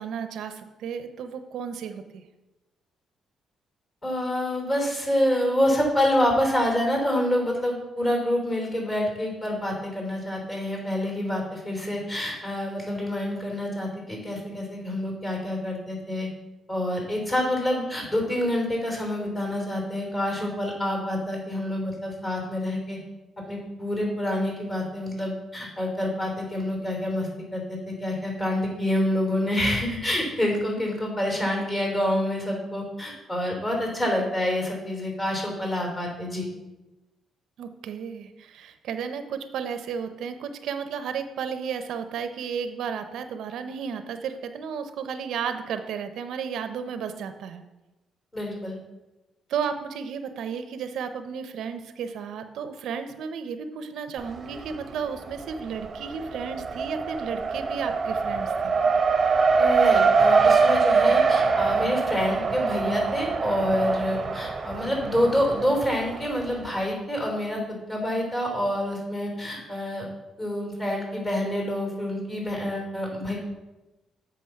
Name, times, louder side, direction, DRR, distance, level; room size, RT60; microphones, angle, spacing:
voice 1, 0.0-2.2 37.6-47.6 49.5-58.8, right 6 dB, 75° right, 9 dB, 0.6 m, -33 dB
voice 2, 4.0-16.3 16.7-23.0 23.5-36.5 48.3-48.8 59.6-70.1 70.4-73.3, left 1 dB, 25° left, 0 dB, 3.2 m, -27 dB
Race car auto racing, 54.2-54.9 55.2-66.6, right 4 dB, 35° right, 0.7 m, -24 dB
7.7 x 5.2 x 5.6 m, 1.1 s
cardioid pair, 90°, 0 cm